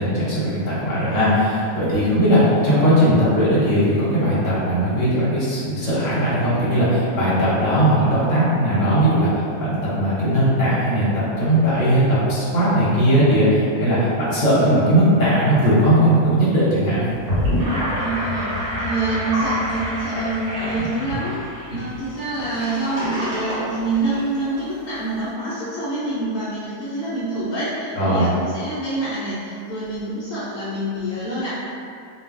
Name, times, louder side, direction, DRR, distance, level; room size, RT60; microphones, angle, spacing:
voice 1, 0.0-11.1 11.4-17.0 28.0-28.3, equal, 35° left, -10 dB, 0.9 m, -18 dB
Gurgling / Sink (filling or washing), 17.1-24.6, equal, 75° right, 1.4 m, -26 dB
voice 2, 18.0-31.5, right 2 dB, 65° left, -11 dB, 0.9 m, -26 dB
3.1 x 2.2 x 2.5 m, 2.5 s
omnidirectional pair, 1.6 m